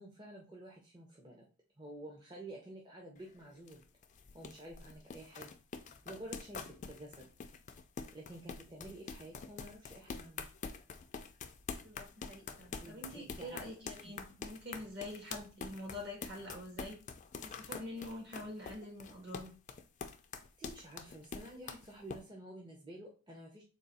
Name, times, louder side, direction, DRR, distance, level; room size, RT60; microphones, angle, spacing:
voice 1, 0.0-1.4 1.8-3.8 4.3-5.5 6.0-7.2 8.1-10.5 12.8-13.7 14.1-14.2 20.6-23.6, right 1 dB, 20° right, -2 dB, 0.6 m, -50 dB
sound 1, 3.2-22.2, left 5 dB, 35° left, 0.3 m, -46 dB
voice 2, 11.8-17.0 17.4-19.5, left 1 dB, 50° right, 0 dB, 1.4 m, -46 dB
3.7 x 2.3 x 4.0 m, 0.35 s
head